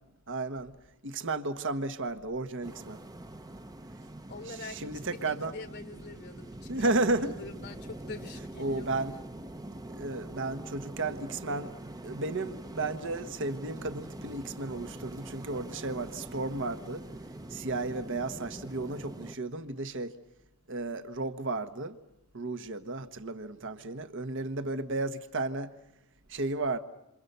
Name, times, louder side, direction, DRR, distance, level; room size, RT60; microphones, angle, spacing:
voice 1, 0.3-0.7 1.0-3.0 4.7-5.5 6.7-7.5 8.6-9.1 10.0-11.7 12.0-17.0 17.5-20.1 20.7-22.0 22.3-25.7 26.3-26.8, right 2 dB, 60° right, 1.3 m, -33 dB
sound 1, 2.6-19.4, right 1 dB, 15° right, 0.9 m, -44 dB
voice 2, 4.3-9.0, left 3 dB, 50° left, 1.3 m, -45 dB
28.0 x 27.0 x 6.8 m
head